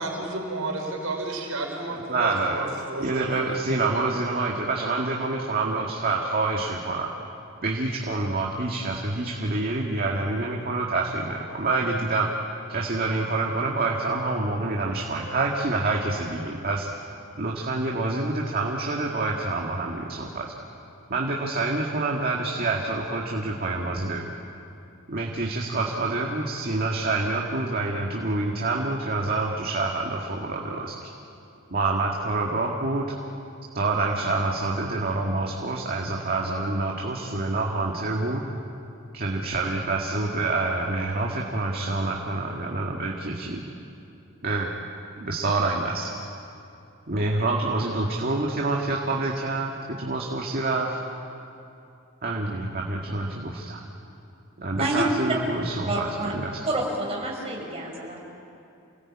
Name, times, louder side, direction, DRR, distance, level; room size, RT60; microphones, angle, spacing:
voice 1, 0.0-3.4, right 2 dB, 85° right, 1 dB, 4.8 m, -32 dB
voice 2, 1.9-2.7 3.0-7.1 7.6-12.3 12.7-16.9 17.4-20.5 21.1-24.2 25.1-31.1 31.7-33.0 33.7-38.4 39.1-43.6 44.4-44.7 45.2-46.1 47.1-51.0 52.2-53.8 54.6-56.6, right 2 dB, 45° right, -1 dB, 2.0 m, -27 dB
voice 3, 55.9-56.3 56.6-58.2, right 1 dB, 30° right, -2 dB, 5.7 m, -28 dB
28.5 x 19.0 x 8.7 m, 2.6 s
head